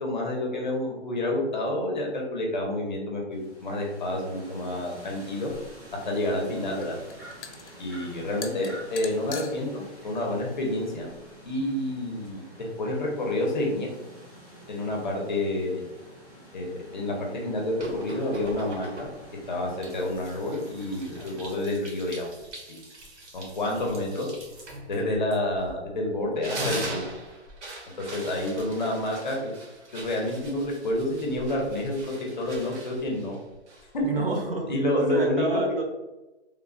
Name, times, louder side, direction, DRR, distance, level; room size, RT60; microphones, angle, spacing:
voice 1, 0.0-5.5 6.0-7.0 7.8-11.1 11.5-13.9 14.7-15.8 16.5-19.1 19.5-22.3 22.7-22.8 23.3-24.3 24.9-27.0 28.0-29.5 29.9-33.4 33.9-34.1 34.6-35.8, left 1 dB, 45° left, 0 dB, 0.6 m, -29 dB
sound 1, 3.3-21.4, right 1 dB, 20° right, 0.4 m, -48 dB
sound 2, 5.8-11.6, left 6 dB, 90° left, 0.5 m, -44 dB
sound 3, 17.8-19.3 19.8-25.9 26.2-34.1, right 1 dB, 90° right, 1.1 m, -40 dB
voice 2, 34.1-34.6 34.9-35.8, right 2 dB, 55° right, 1 dB, 0.7 m, -27 dB
3.2 x 2.1 x 2.4 m, 1.1 s
hypercardioid pair, 170°, 34 cm